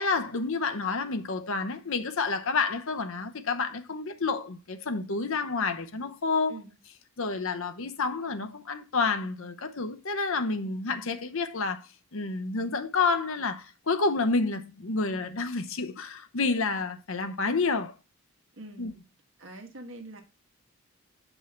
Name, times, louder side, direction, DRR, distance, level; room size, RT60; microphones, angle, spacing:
voice 1, 0.0-6.6 7.2-18.0 18.8-18.9, left 4 dB, 65° left, 0.8 m, -29 dB
voice 2, 18.6-18.9 19.4-20.2, right 2 dB, 55° right, 1.6 m, -44 dB
7.2 x 5.5 x 4.3 m
head